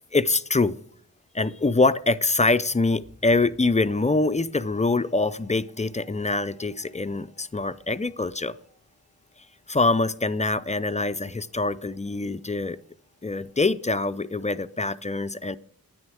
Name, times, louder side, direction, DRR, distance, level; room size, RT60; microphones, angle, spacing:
voice 1, 0.1-0.8 1.3-8.6 9.7-12.8 13.2-15.6, left 3 dB, 20° left, 14 dB, 0.4 m, -24 dB
10.0 x 9.6 x 6.2 m, 0.65 s
wide cardioid pair, 90°, 36 cm